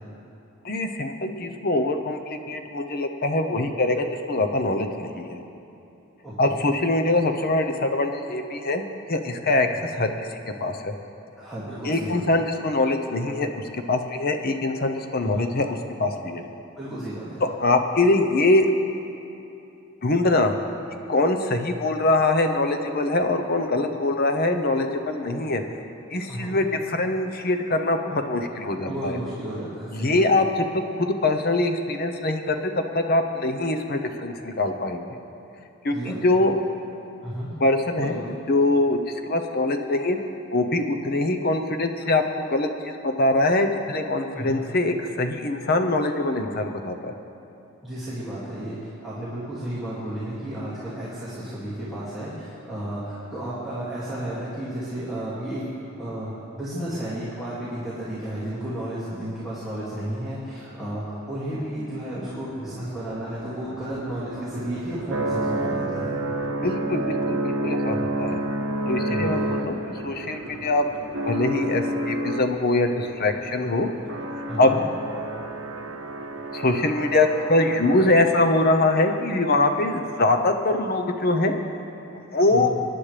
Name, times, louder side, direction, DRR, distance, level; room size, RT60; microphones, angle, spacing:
voice 1, 0.6-5.4 6.4-10.9 11.8-16.4 17.4-18.7 20.0-20.5 21.1-25.6 26.1-29.2 29.9-35.1 35.8-36.6 37.6-39.0 39.3-40.2 40.5-42.2 42.5-47.1 66.6-68.4 68.9-69.8 70.0-70.9 71.3-73.9 74.6-74.7 76.5-81.6 82.3-82.7, left 2 dB, 45° left, 5 dB, 0.8 m, -23 dB
voice 2, 6.2-6.7 11.4-12.4 15.2-15.5 16.8-17.4 26.3-26.6 28.9-30.3 35.9-36.4 37.2-37.5 38.0-38.3 44.3-44.6 47.8-55.6 56.0-66.2 69.1-69.3 74.5-74.8 82.5-82.7, right 1 dB, ahead, -11 dB, 2.3 m, -33 dB
sound 1, 62.3-78.5, right 1 dB, 65° right, 0.8 m, -30 dB
24.5 x 10.5 x 3.4 m, 2.8 s
head